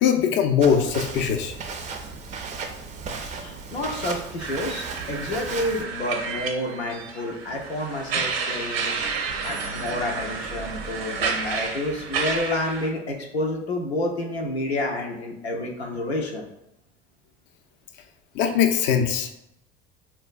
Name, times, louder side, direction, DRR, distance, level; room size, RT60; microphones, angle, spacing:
voice 1, 0.0-1.5 18.4-19.3, left 7 dB, 40° left, 5 dB, 0.4 m, -21 dB
Walk footsteps, 0.6-5.8, right 4 dB, 25° right, 0.4 m, -35 dB
voice 2, 3.3-9.0 9.4-16.5, left 1 dB, 90° left, 1 dB, 0.5 m, -29 dB
sound 1, 4.4-12.9, right 5 dB, 75° right, 0.6 m, -30 dB
3.7 x 2.2 x 2.4 m, 0.85 s
figure-of-eight pair, 70°, 31 cm